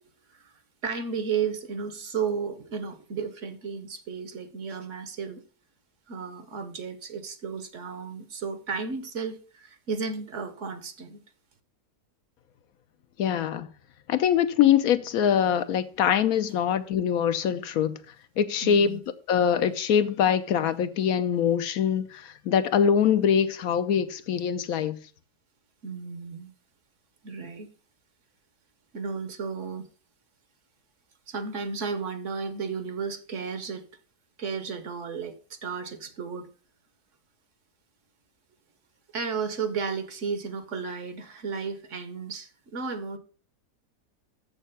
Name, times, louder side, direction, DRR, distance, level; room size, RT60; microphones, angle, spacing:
voice 1, 0.8-5.4 6.1-11.2 18.6-19.0 25.8-26.5 27.2-27.7 28.9-29.9 31.3-33.8 34.4-36.5 39.1-43.2, right 5 dB, 55° right, 1.1 m, -33 dB
voice 2, 13.2-13.7 14.1-18.0 18.4-19.0 19.3-25.0, left 8 dB, 75° left, 1.1 m, -23 dB
7.2 x 6.7 x 5.5 m
omnidirectional pair, 1.6 m